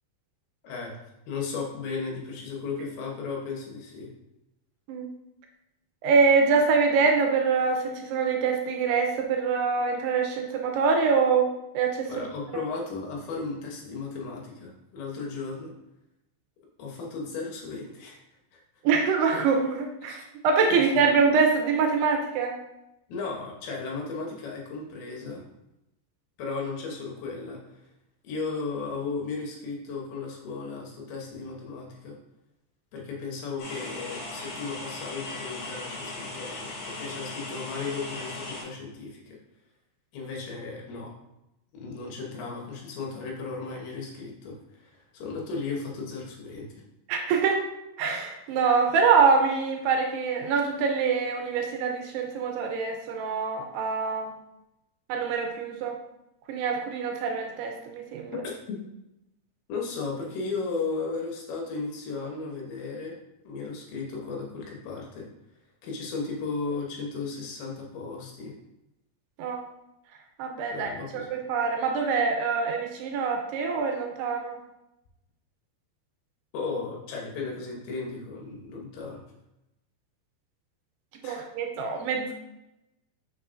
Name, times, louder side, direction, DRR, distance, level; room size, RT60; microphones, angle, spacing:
voice 1, 1.3-4.1 12.1-15.7 16.8-18.2 18.5-18.6 20.0-20.2 20.7-21.0 23.1-25.4 26.4-27.8 28.2-32.2 32.9-39.4 40.1-41.1 41.7-46.8 58.4-58.8 59.7-63.2 63.4-65.3 65.8-68.6 70.7-71.3 76.5-79.2 81.2-81.4, left 4 dB, 70° left, -1 dB, 2.8 m, -35 dB
voice 2, 6.0-12.3 12.5-12.6 18.8-22.6 47.1-47.6 48.0-54.3 55.1-56.0 56.5-58.4 69.4-69.6 70.4-74.6 81.2-82.3, right 5 dB, 80° right, 3 dB, 2.6 m, -25 dB
sound 1, 33.6-38.6, left 2 dB, 50° left, 3.1 m, -38 dB
7.9 x 6.2 x 2.5 m, 0.91 s
omnidirectional pair, 5.0 m